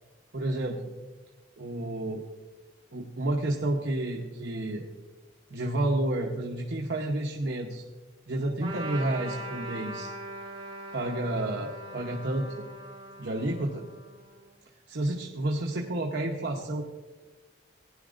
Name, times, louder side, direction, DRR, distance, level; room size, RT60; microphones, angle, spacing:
voice 1, 0.3-0.8 1.6-2.2 2.9-4.8 5.5-7.8 8.3-10.1 10.9-12.6 13.2-13.8 14.9-16.8, right 1 dB, 65° right, 0 dB, 0.8 m, -30 dB
Trumpet, 8.6-14.5, right 1 dB, 25° right, 1.5 m, -41 dB
17.0 x 10.5 x 2.5 m, 1.2 s
head